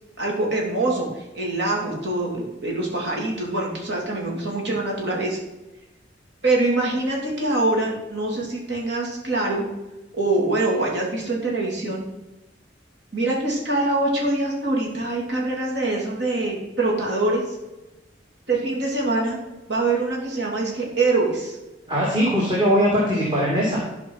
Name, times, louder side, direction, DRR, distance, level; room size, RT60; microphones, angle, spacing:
voice 1, 0.2-5.4 6.4-9.6 10.1-12.0 13.1-17.6 18.5-19.4 19.7-21.6, right 2 dB, 65° right, -2 dB, 3.2 m, -24 dB
voice 2, 21.9-23.8, equal, 25° right, -5 dB, 2.3 m, -20 dB
13.0 x 5.1 x 5.8 m, 1.0 s
head